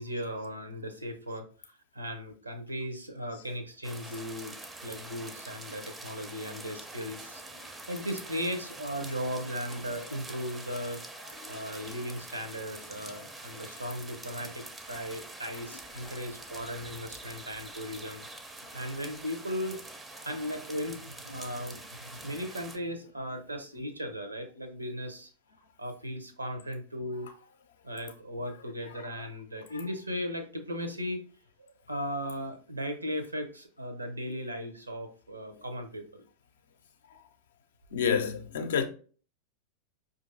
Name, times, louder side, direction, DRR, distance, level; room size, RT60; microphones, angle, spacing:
voice 1, 0.0-4.5 4.8-11.1 11.5-18.3 18.7-19.8 20.2-25.3 25.8-27.3 27.8-31.2 31.6-36.2, equal, 85° right, 0.7 m, -37 dB
sound 1, 3.8-22.8, right 2 dB, 10° right, 0.5 m, -45 dB
voice 2, 37.9-38.8, left 7 dB, 60° left, 0.5 m, -28 dB
5.0 x 2.6 x 2.6 m
figure-of-eight pair, 90°, 0 cm